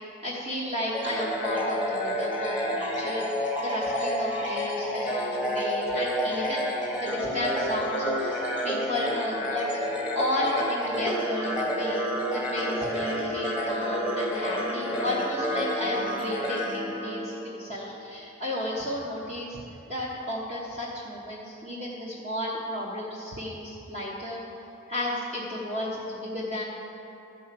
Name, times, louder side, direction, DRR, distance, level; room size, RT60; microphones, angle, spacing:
voice 1, 0.2-9.7 10.1-12.1 12.3-19.6 19.9-24.4 24.9-26.6, left 1 dB, 30° right, -5 dB, 1.1 m, -33 dB
sound 1, 0.9-17.7, equal, 5° right, 1.1 m, -29 dB
12.5 x 5.4 x 7.5 m, 2.9 s
head